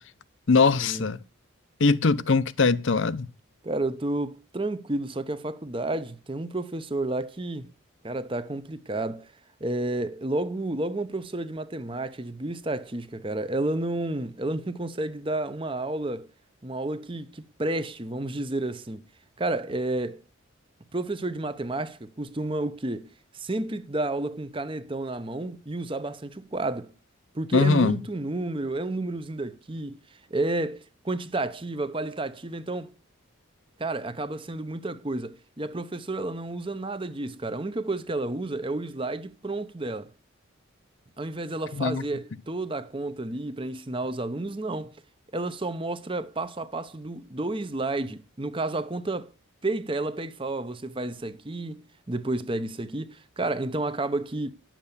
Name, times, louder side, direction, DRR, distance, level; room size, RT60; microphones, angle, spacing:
voice 1, 0.5-1.2 1.8-3.3 27.5-28.0 41.7-42.0, left 4 dB, 65° left, 0.7 m, -21 dB
voice 2, 3.6-7.7 8.0-9.3 9.6-16.3 16.6-19.0 19.4-20.2 20.9-26.9 27.3-30.0 30.3-32.9 33.8-40.1 41.2-44.9 45.3-49.3 49.6-54.5, right 2 dB, 25° right, 0.8 m, -31 dB
10.5 x 7.5 x 6.8 m
head